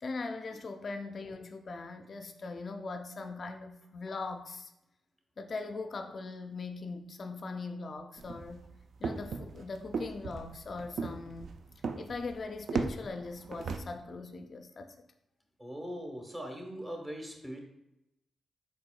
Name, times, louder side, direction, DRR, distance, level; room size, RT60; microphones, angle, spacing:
voice 1, 0.0-4.7 5.4-8.7 9.0-11.6 12.0-14.9, left 3 dB, 55° left, 7 dB, 0.3 m, -40 dB
sound 1, 8.2-13.8, right 4 dB, 65° right, 0.3 m, -37 dB
voice 2, 15.6-17.6, equal, 20° right, 2 dB, 1.1 m, -40 dB
4.4 x 4.0 x 2.3 m, 0.87 s
supercardioid pair, 45°, 0 cm